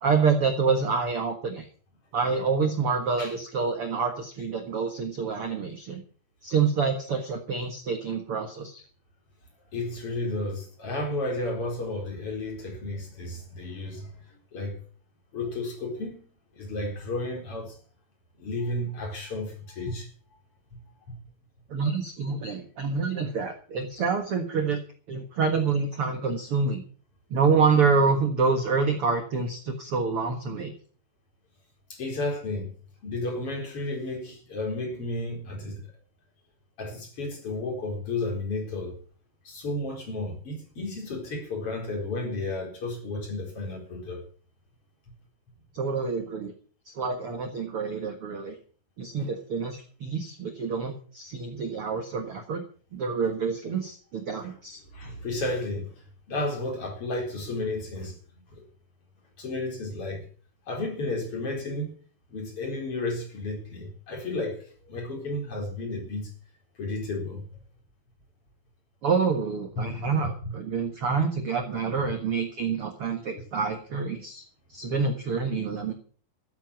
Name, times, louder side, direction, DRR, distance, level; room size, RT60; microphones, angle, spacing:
voice 1, 0.0-1.7 2.1-6.0 6.4-8.8 21.7-24.8 25.1-26.8 27.3-30.7 45.7-46.5 46.9-48.6 49.0-52.6 52.9-54.8 69.0-74.4 74.7-75.9, right 5 dB, 50° right, 1.9 m, -27 dB
voice 2, 9.7-14.2 14.5-14.8 15.3-16.2 16.6-17.8 18.4-20.1 21.1-21.2 31.9-32.7 33.0-35.8 36.8-38.9 39.4-44.2 54.9-55.9 56.3-58.2 59.4-60.2 60.7-61.9 62.3-64.6 64.9-66.3 66.8-67.5 69.8-70.0 70.4-70.5, left 2 dB, 35° left, 4.9 m, -32 dB
14.0 x 9.2 x 7.0 m
omnidirectional pair, 4.5 m